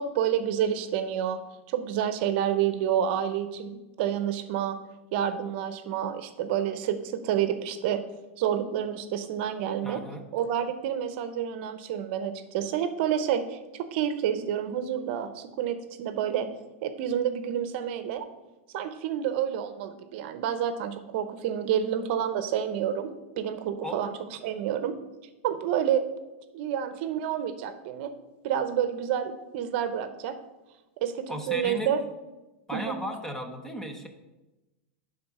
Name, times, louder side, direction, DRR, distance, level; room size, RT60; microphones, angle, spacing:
voice 1, 0.0-1.4 1.7-4.8 5.1-8.0 8.4-10.0 10.3-16.5 16.8-18.2 18.7-24.1 24.4-24.9 25.4-26.0 26.5-28.1 28.4-30.4 31.0-32.0 32.7-33.0, right 9 dB, 55° right, 10 dB, 0.7 m, -29 dB
voice 2, 9.8-10.3 23.8-24.1 31.3-31.9 32.7-34.1, equal, 5° left, 5 dB, 0.7 m, -36 dB
10.5 x 3.7 x 5.5 m, 1.1 s
supercardioid pair, 145°, 7 cm